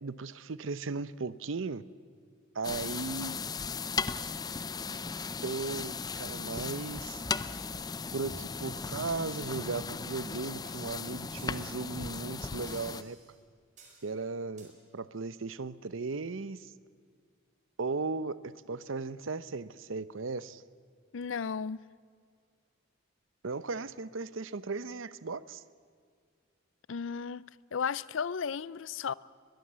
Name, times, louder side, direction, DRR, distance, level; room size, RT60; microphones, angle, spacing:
voice 1, 0.0-1.8 2.5-3.6 4.9-5.0 5.4-7.2 8.1-13.2 14.0-16.7 17.8-20.6 23.4-25.6, right 4 dB, 75° right, 0.7 m, -37 dB
sound 1, 2.6-13.0, left 5 dB, 20° left, 0.5 m, -37 dB
sound 2, 7.2-7.9 8.3-8.6 8.9-9.1 9.5-9.8 10.1-10.2 10.6-10.8 11.4-12.0 12.6-13.4 13.8-14.1 14.6-14.7, right 1 dB, 40° right, 4.3 m, -51 dB
voice 2, 21.1-21.8 26.9-29.1, left 6 dB, 70° left, 0.5 m, -34 dB
21.5 x 21.5 x 7.5 m
head